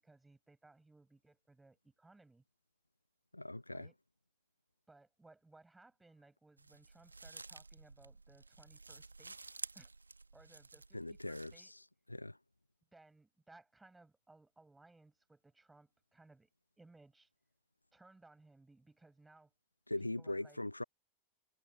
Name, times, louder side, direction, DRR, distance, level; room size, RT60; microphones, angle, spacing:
voice 1, 0.0-2.4 3.7-3.9 4.9-9.4 9.7-9.9 10.3-11.7 12.9-16.5 16.8-17.3 17.9-19.5 20.0-20.6, right 2 dB, 10° right, 7.9 m, -63 dB
voice 2, 3.3-3.9 10.9-11.8 12.1-12.4 19.9-20.8, left 1 dB, 85° left, 0.3 m, -41 dB
sound 1, 6.6-11.6, right 3 dB, 80° right, 1.8 m, -52 dB
figure-of-eight pair, 90°, 0 cm